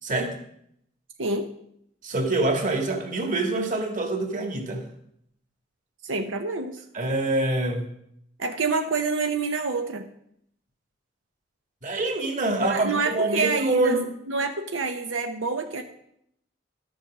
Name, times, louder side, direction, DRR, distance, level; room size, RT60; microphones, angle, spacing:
voice 1, 0.0-0.3 2.0-4.9 6.9-7.9 11.8-14.1, right 2 dB, 45° right, 4 dB, 1.9 m, -25 dB
voice 2, 6.0-6.8 8.4-10.1 12.6-14.0 14.3-15.8, right 4 dB, 90° right, 5 dB, 0.9 m, -27 dB
12.5 x 7.7 x 6.1 m, 0.73 s
head